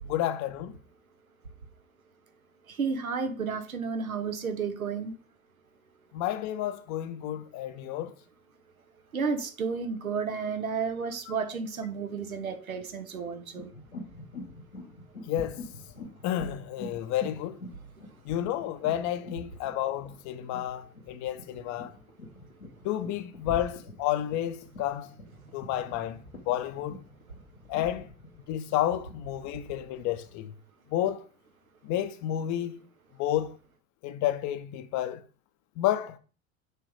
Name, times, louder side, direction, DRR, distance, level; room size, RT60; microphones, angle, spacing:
voice 1, 0.0-0.8 6.1-8.1 15.3-15.6 16.2-17.6 18.2-21.9 22.8-25.1 25.5-26.2 26.5-27.0 27.7-28.1 28.5-30.5 30.9-31.3 31.8-32.8 33.2-33.6 34.0-35.2 35.8-36.2, left 12 dB, 45° left, 0.9 m, -30 dB
voice 2, 2.7-5.1 9.1-13.7, right 5 dB, 85° right, 1.1 m, -32 dB
sound 1, 13.5-30.3, left 2 dB, 90° left, 1.7 m, -45 dB
6.8 x 3.7 x 4.7 m
figure-of-eight pair, 80°, 41 cm